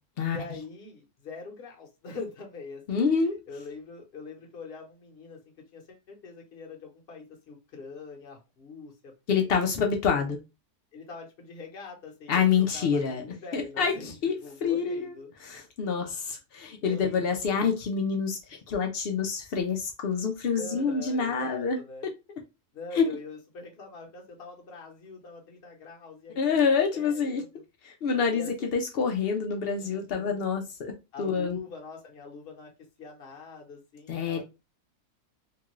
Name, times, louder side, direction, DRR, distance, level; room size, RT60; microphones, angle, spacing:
voice 1, 0.3-5.4 5.7-9.5 10.9-15.3 16.8-17.8 20.6-22.1 22.7-26.4 26.6-27.6 28.3-28.7 29.8-30.5 31.1-32.7 33.0-34.4, left 4 dB, 45° left, 1 dB, 0.9 m, -44 dB
voice 2, 2.9-3.3 9.3-10.4 12.3-13.2 13.5-15.1 15.4-21.8 22.9-23.1 26.4-27.4 27.8-30.9 31.2-31.6 34.1-34.4, left 6 dB, 80° left, 3 dB, 0.5 m, -27 dB
2.9 x 2.4 x 3.0 m, 0.26 s
omnidirectional pair, 1.6 m